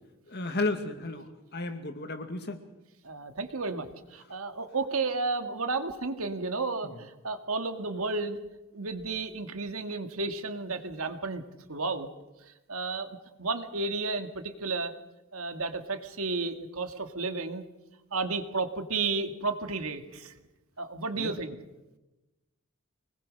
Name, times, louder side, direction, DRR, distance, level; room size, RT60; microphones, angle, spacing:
voice 1, 0.3-2.6 6.8-7.0 21.1-21.3, left 2 dB, 50° left, 7 dB, 2.2 m, -33 dB
voice 2, 3.0-3.9 4.1-8.4 8.7-11.4 11.7-12.1 12.7-14.9 15.3-17.6 18.1-20.3 20.8-21.5, right 3 dB, 80° right, 7 dB, 2.1 m, -32 dB
24.5 x 20.0 x 6.5 m, 1.0 s
head